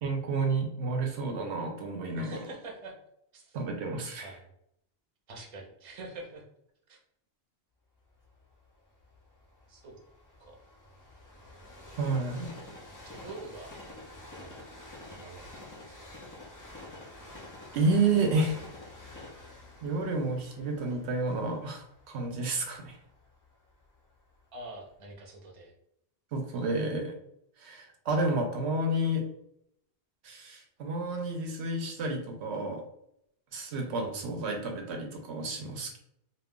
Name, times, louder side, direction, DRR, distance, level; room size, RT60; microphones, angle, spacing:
voice 1, 0.0-2.3 3.5-4.3 12.0-12.5 17.7-18.6 19.8-23.0 26.3-27.1 27.6-29.2 30.2-32.8 33.5-36.0, right 2 dB, 80° right, 3 dB, 0.8 m, -30 dB
voice 2, 2.1-2.9 3.3-3.6 4.2-4.4 5.3-6.4 6.9-7.0 9.7-10.0 10.4-10.6 13.0-13.7 14.4-14.6 15.0-15.9 24.5-25.7 33.7-34.2, right 2 dB, 40° right, 0 dB, 0.6 m, -45 dB
Train, 8.2-24.2 24.8-24.9, left 2 dB, 30° left, 0.4 m, -49 dB
2.2 x 2.1 x 3.5 m, 0.75 s
omnidirectional pair, 1.1 m